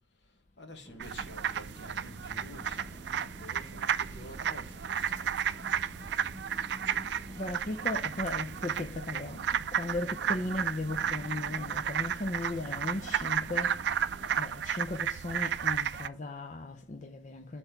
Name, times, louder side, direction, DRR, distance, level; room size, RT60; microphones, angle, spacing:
voice 1, 0.0-5.9 6.2-6.3, equal, 70° left, 1.5 m, -51 dB
sound 1, 0.8-14.4, equal, 15° left, 2.2 m, -49 dB
sound 2, 1.0-16.1, right 8 dB, 65° right, 0.3 m, -33 dB
Hands, 4.9-9.4, right 6 dB, 45° right, 1.6 m, -61 dB
voice 2, 7.4-13.9 14.4-17.6, left 2 dB, 40° left, 0.5 m, -37 dB
7.0 x 4.2 x 5.7 m
head